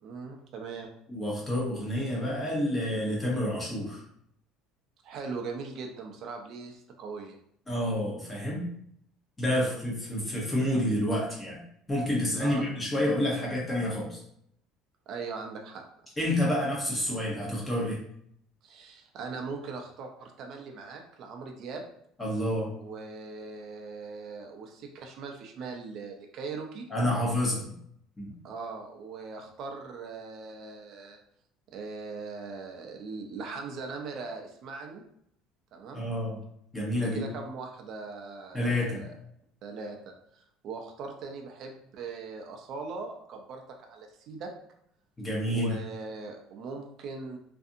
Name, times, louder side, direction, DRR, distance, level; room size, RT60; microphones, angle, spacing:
voice 1, 0.0-0.9 5.0-7.4 9.6-9.8 12.4-12.8 15.1-15.8 18.6-21.8 22.8-26.8 28.4-31.2 31.7-35.0 35.7-36.0 37.0-39.1 39.6-44.5 45.5-47.4, right 4 dB, 45° right, 3 dB, 0.4 m, -40 dB
voice 2, 1.1-4.0 7.7-8.6 9.4-11.6 11.9-14.2 16.2-18.0 22.2-22.7 26.9-27.7 28.2-28.3 35.9-36.4 36.7-37.3 38.5-39.0 45.2-45.8, left 1 dB, 10° left, -4 dB, 0.8 m, -29 dB
2.6 x 2.5 x 2.5 m, 0.70 s
cardioid pair, 165°, 0 cm